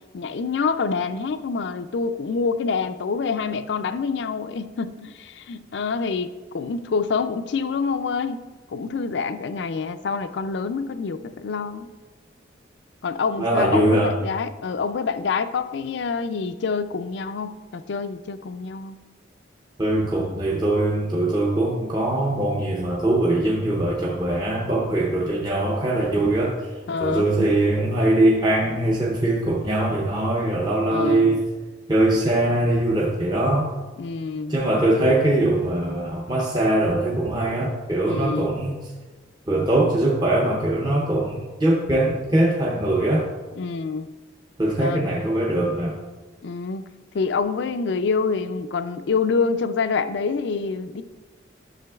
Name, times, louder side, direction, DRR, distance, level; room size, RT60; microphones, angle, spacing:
voice 1, 0.1-6.3 6.5-8.4 8.7-11.9 13.0-19.0 26.9-27.5 30.9-31.4 34.0-34.6 38.0-38.6 43.6-44.1 44.8-45.2 46.4-46.8 47.1-51.0, left 5 dB, 65° left, 11 dB, 0.4 m, -26 dB
voice 2, 13.4-14.1 19.8-26.7 27.0-31.4 31.9-33.7 34.5-38.8 39.5-43.3 44.6-46.0, right 1 dB, 20° right, -4 dB, 0.7 m, -22 dB
10.5 x 6.7 x 2.3 m, 1.3 s
head